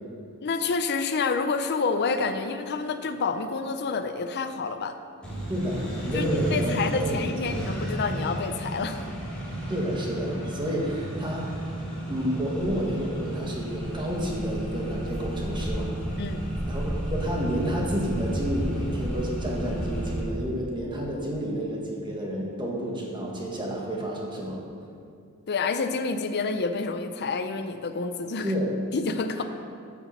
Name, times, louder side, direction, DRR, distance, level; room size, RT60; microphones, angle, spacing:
voice 1, 0.4-5.0 6.1-9.1 16.2-16.5 25.5-28.5 28.9-29.4, left 4 dB, 50° left, 8 dB, 0.5 m, -28 dB
Accelerating revving vroom, 5.2-20.2, right 1 dB, 5° left, 2.4 m, -33 dB
voice 2, 5.5-7.6 9.7-11.6 12.1-16.0 16.7-24.6 28.4-28.7 29.4-29.5, equal, 20° right, -2 dB, 1.5 m, -30 dB
Walk footsteps, 12.5-20.2, equal, 40° right, 2.4 m, -34 dB
9.2 x 5.9 x 7.0 m, 2.3 s
head